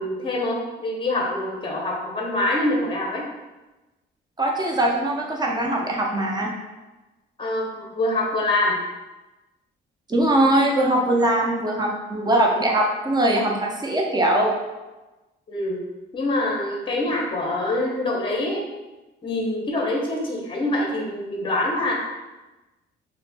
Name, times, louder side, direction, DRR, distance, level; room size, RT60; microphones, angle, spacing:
voice 1, 0.0-3.2 7.4-8.8 15.5-15.8 16.1-18.7 19.2-21.9, left 1 dB, 25° left, -1 dB, 0.6 m, -25 dB
voice 2, 4.4-6.5 10.1-14.5, right 1 dB, 20° right, 0 dB, 0.5 m, -21 dB
2.4 x 2.0 x 3.3 m, 1.1 s
cardioid pair, 90°, 20 cm